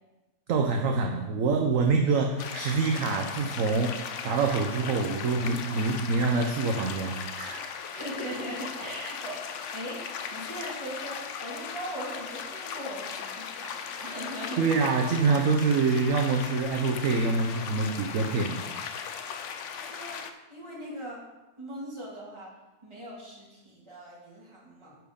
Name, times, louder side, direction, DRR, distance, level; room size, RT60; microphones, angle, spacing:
voice 1, 0.5-3.9 4.2-7.6 14.6-18.6, right 4 dB, 65° right, 3 dB, 1.0 m, -26 dB
sound 1, 2.4-20.3, left 7 dB, 60° left, 0.8 m, -38 dB
voice 2, 7.9-10.0 10.3-14.6 19.9-20.2 20.5-21.2 21.6-22.5 22.8-25.0, right 1 dB, 20° right, -5 dB, 2.2 m, -39 dB
10.5 x 4.7 x 5.1 m, 1.1 s
omnidirectional pair, 1.7 m